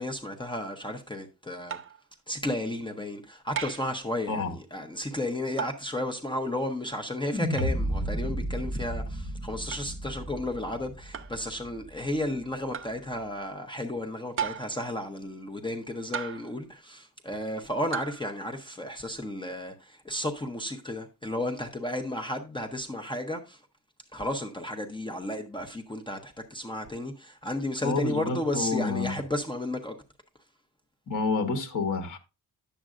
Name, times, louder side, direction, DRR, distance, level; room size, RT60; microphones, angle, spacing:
voice 1, 0.0-1.8 2.3-23.6 24.1-30.0, left 1 dB, 10° left, 0.7 m, -33 dB
sound 1, 1.7-2.0 3.6-4.0 5.6-5.9 7.6-7.8 9.7-9.9 11.1-11.4 12.7-13.0 14.4-14.8 16.1-16.6 17.9-18.2, right 7 dB, 35° right, 0.4 m, -35 dB
sound 2, 7.3-11.7, equal, 5° right, 1.6 m, -32 dB
voice 2, 27.8-29.1 31.1-32.2, left 3 dB, 50° left, 1.3 m, -29 dB
10.0 x 7.4 x 2.4 m
wide cardioid pair, 175°, 39 cm